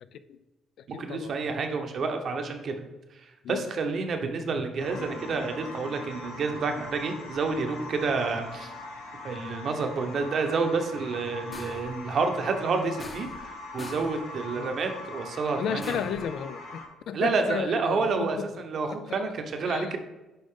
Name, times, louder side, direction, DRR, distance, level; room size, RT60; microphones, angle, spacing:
voice 1, 0.0-0.4 0.9-1.3 3.4-3.6 4.9-5.1 14.6-14.7 15.6-18.5 18.9-19.2 19.7-19.9, left 8 dB, 60° left, 13 dB, 0.4 m, -34 dB
voice 2, 0.9-2.8 3.1-8.7 9.2-16.0 17.1-20.0, right 4 dB, 45° right, 5 dB, 0.9 m, -29 dB
sound 1, 4.8-16.9, left 2 dB, 85° left, 1.6 m, -41 dB
sound 2, 11.5-12.0 13.0-13.5 13.8-14.2 15.8-16.3, left 2 dB, 20° left, 0.8 m, -42 dB
10.0 x 3.7 x 3.7 m, 1.1 s
cardioid pair, 150°, 0 cm